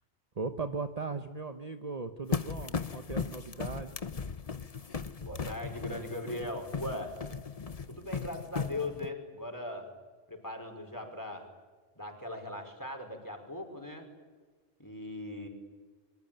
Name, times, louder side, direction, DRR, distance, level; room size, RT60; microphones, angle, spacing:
voice 1, 0.3-4.0, right 4 dB, 35° right, 7 dB, 1.2 m, -38 dB
sound 1, 2.3-9.1, left 5 dB, 35° left, 1.0 m, -37 dB
voice 2, 5.2-7.2 7.9-9.9 10.3-11.5 12.0-14.1 14.8-15.5, left 1 dB, 15° left, 4 dB, 5.3 m, -39 dB
26.5 x 24.5 x 9.1 m, 1.4 s
omnidirectional pair, 1.2 m